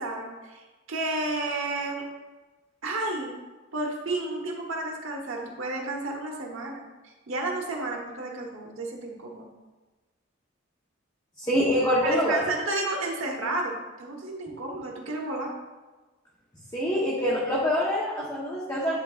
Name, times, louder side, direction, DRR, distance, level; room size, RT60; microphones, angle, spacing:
voice 1, 0.0-2.0 2.8-3.3 3.7-9.5 12.0-15.5, right 2 dB, 85° right, 0 dB, 1.2 m, -32 dB
voice 2, 11.4-12.4 16.7-19.0, equal, 15° left, -8 dB, 1.0 m, -25 dB
10.5 x 3.8 x 2.4 m, 1.2 s
head